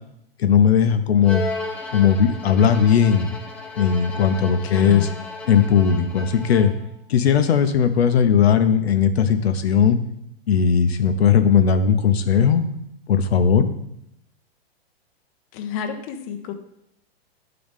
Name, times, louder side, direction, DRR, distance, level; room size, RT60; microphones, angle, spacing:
voice 1, 0.4-1.4 1.9-3.3 3.8-5.1 5.5-6.7 7.1-10.0 10.5-12.6 13.1-13.7, left 7 dB, 85° left, 8 dB, 0.7 m, -17 dB
Bowed string instrument, 1.2-6.9, left 3 dB, 5° left, 0.3 m, -34 dB
voice 2, 4.6-5.2 15.5-16.5, left 7 dB, 35° left, 5 dB, 0.7 m, -31 dB
10.5 x 3.8 x 3.5 m, 0.78 s
hypercardioid pair, 140°, 31 cm